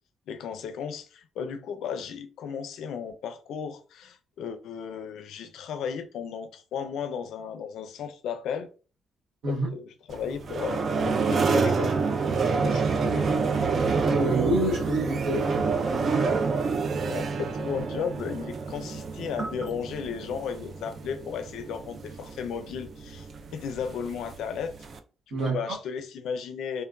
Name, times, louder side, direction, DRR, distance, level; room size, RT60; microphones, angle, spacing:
voice 1, 0.3-8.7 9.5-12.1 12.4-13.3 17.0-24.7 25.4-26.8, left 7 dB, 80° left, 0.4 m, -35 dB
sound 1, 10.1-25.0, right 4 dB, 50° right, 0.4 m, -28 dB
voice 2, 14.1-15.6 25.3-25.7, right 1 dB, 75° right, 1.1 m, -27 dB
3.2 x 2.2 x 2.2 m
cardioid pair, 90°, 0 cm